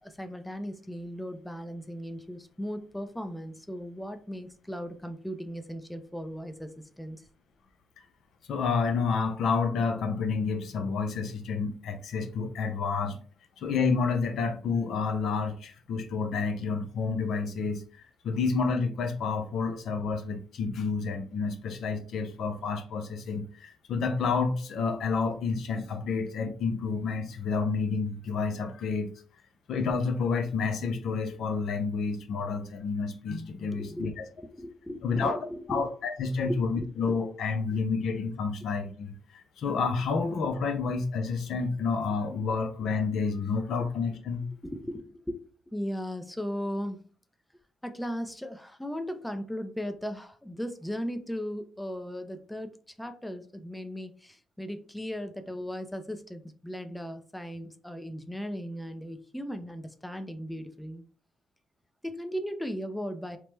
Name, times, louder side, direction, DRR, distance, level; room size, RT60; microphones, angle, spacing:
voice 1, 0.0-6.7 7.0-7.2 33.7-35.9 36.5-36.9 43.8-43.9 44.6-45.4 45.7-47.0 47.8-52.7 53.0-61.0 62.0-63.4, equal, 5° left, 8 dB, 0.4 m, -37 dB
voice 2, 8.5-13.2 13.6-17.8 18.2-29.1 29.7-34.2 35.0-35.4 35.7-44.5, left 4 dB, 70° left, 7 dB, 0.5 m, -29 dB
3.0 x 2.1 x 3.2 m, 0.42 s
cardioid pair, 90°, 0 cm